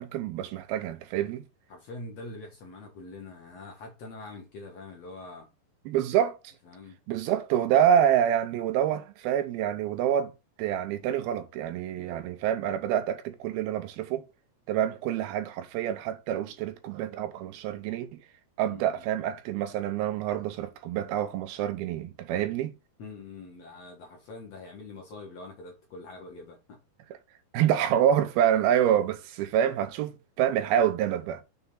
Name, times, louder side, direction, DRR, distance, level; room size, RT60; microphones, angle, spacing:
voice 1, 0.0-1.4 5.9-6.4 7.1-10.3 10.6-14.3 14.7-18.2 18.6-22.8 27.5-31.4, right 10 dB, 80° right, 2.6 m, -27 dB
voice 2, 1.7-5.5 6.7-7.0 18.6-19.0 23.0-26.8, left 3 dB, 60° left, 1.9 m, -44 dB
6.9 x 3.5 x 5.4 m
omnidirectional pair, 4.5 m